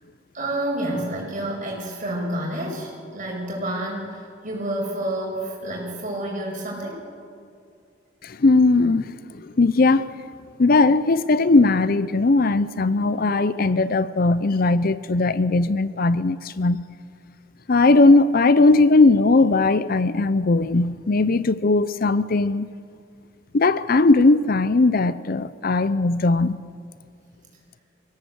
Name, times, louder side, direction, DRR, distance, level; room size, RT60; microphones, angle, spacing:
voice 1, 0.3-7.0, right 1 dB, 45° right, 7.3 m, -29 dB
voice 2, 8.2-10.1 10.6-16.8 17.7-22.7 23.5-26.6, left 3 dB, 50° left, 0.6 m, -18 dB
25.0 x 17.0 x 8.1 m
head